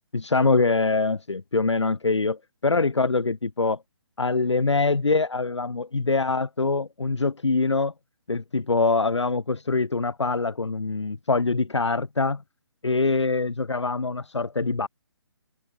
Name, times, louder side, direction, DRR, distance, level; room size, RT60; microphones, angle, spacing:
voice 1, 0.1-3.8 4.2-7.9 8.3-12.4 12.8-14.9, left 3 dB, 80° left, 3.8 m, -24 dB
figure-of-eight pair, 145°, 15 cm